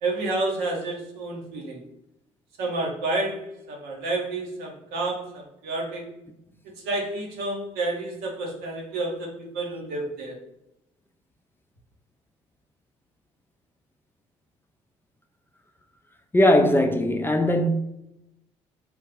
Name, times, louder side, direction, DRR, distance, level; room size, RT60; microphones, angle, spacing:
voice 1, 0.0-1.8 2.6-6.1 6.6-10.4, right 2 dB, 75° right, 0.9 m, -30 dB
voice 2, 16.3-17.7, left 1 dB, 15° left, 0.4 m, -19 dB
3.5 x 2.4 x 3.1 m
hypercardioid pair, 55°, 16 cm